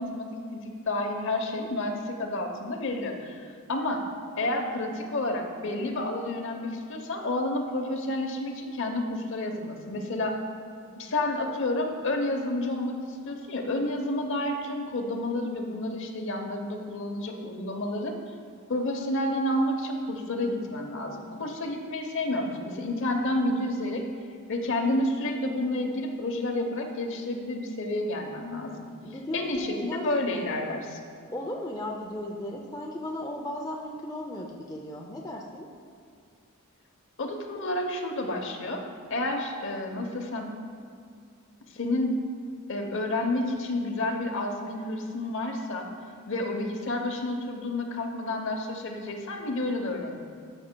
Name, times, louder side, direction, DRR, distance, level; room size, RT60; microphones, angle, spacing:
voice 1, 0.0-3.4 3.7-4.0 4.4-10.4 11.0-18.2 18.7-24.1 24.5-28.9 29.3-31.0 37.2-38.8 39.1-40.5 41.7-42.2 42.7-45.9 46.3-50.1, left 1 dB, 60° left, 3 dB, 0.8 m, -30 dB
voice 2, 29.0-30.1 30.3-30.5 31.3-35.7, left 1 dB, 15° left, -1 dB, 0.4 m, -36 dB
13.5 x 6.2 x 2.2 m, 2.2 s
head